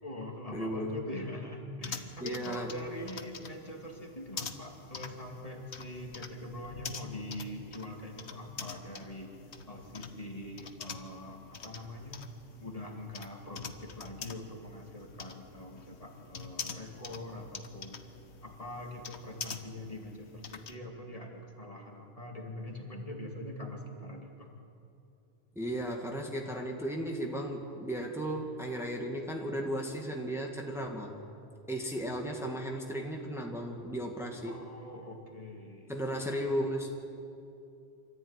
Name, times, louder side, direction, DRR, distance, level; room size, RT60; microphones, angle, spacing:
voice 1, 0.0-9.4 9.7-12.2 12.6-18.0 18.4-24.5 34.4-35.9, left 1 dB, 35° left, 1 dB, 2.5 m, -43 dB
voice 2, 0.5-1.0 2.2-2.7 25.6-31.2 31.7-34.6 35.9-37.0, equal, ahead, 1 dB, 1.9 m, -35 dB
sound 1, 1.8-20.8, left 5 dB, 85° left, 1.4 m, -45 dB
25.5 x 14.0 x 9.7 m, 2.7 s
omnidirectional pair, 1.1 m